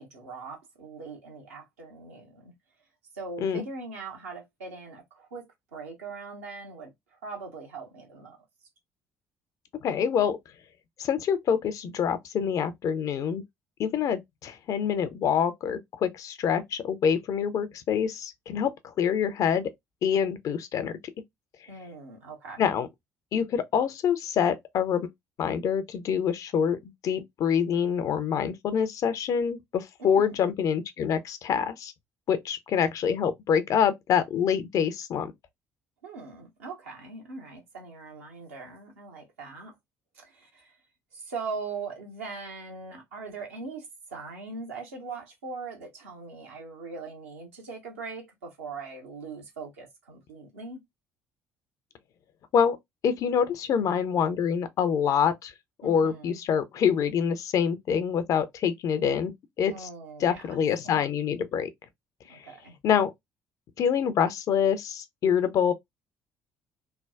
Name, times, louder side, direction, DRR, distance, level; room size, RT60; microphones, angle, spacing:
voice 1, 0.0-2.5 3.1-8.4 21.7-22.6 30.0-30.4 36.0-39.8 40.1-40.7 41.1-50.8 55.8-56.4 59.7-61.0 62.3-62.8, right 4 dB, 75° right, 0.9 m, -41 dB
voice 2, 9.8-10.4 11.0-13.4 13.8-19.7 20.0-20.9 22.6-22.9 23.3-25.1 25.4-31.9 32.3-35.3 52.5-52.8 53.0-55.5 55.8-59.3 59.6-59.9 60.2-61.7 62.3-62.5 62.8-63.1 63.8-65.7, left 7 dB, 45° left, 0.5 m, -26 dB
3.3 x 2.1 x 2.3 m
figure-of-eight pair, 50°, 8 cm